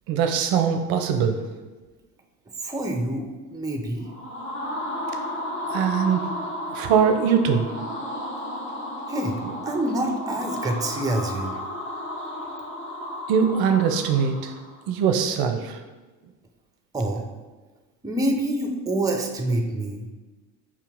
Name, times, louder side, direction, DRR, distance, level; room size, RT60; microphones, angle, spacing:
voice 1, 0.1-1.4 5.7-6.3 6.7-7.7 13.3-14.5 14.9-15.8, right 7 dB, 55° right, 6 dB, 0.5 m, -22 dB
voice 2, 2.6-4.1 9.1-11.6 16.9-17.3 18.0-20.1, right 1 dB, 10° right, 3 dB, 0.5 m, -27 dB
sound 1, 4.0-14.8, left 1 dB, 30° left, 1.1 m, -33 dB
4.8 x 2.8 x 3.5 m, 1.2 s
hypercardioid pair, 65°, 44 cm